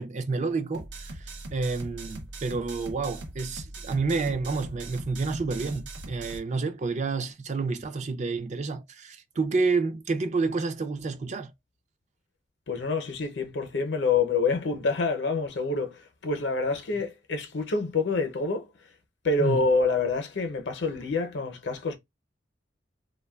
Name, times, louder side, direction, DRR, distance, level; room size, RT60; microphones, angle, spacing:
voice 1, 0.0-11.5 19.4-19.6, right 4 dB, 40° right, 0.4 m, -29 dB
sound 1, 0.7-6.4, right 2 dB, 75° right, 0.7 m, -41 dB
voice 2, 12.7-18.7 19.2-22.0, left 4 dB, 70° left, 0.6 m, -27 dB
3.0 x 2.2 x 2.3 m
head